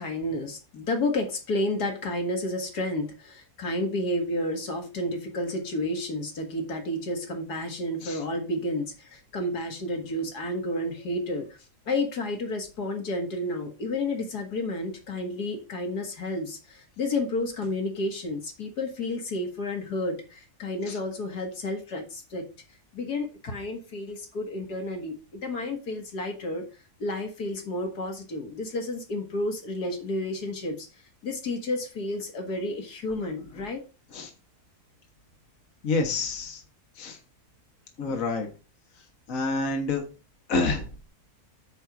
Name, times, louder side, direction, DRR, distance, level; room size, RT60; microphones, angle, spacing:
voice 1, 0.0-11.6 11.9-22.5 22.9-26.7 27.0-30.9 31.2-33.8, left 1 dB, 80° left, 4 dB, 2.4 m, -31 dB
voice 2, 35.8-36.6 37.0-37.2 38.0-38.5 39.3-40.0 40.5-40.9, left 3 dB, 60° left, 3 dB, 1.9 m, -28 dB
9.3 x 4.5 x 6.0 m, 0.32 s
omnidirectional pair, 1.7 m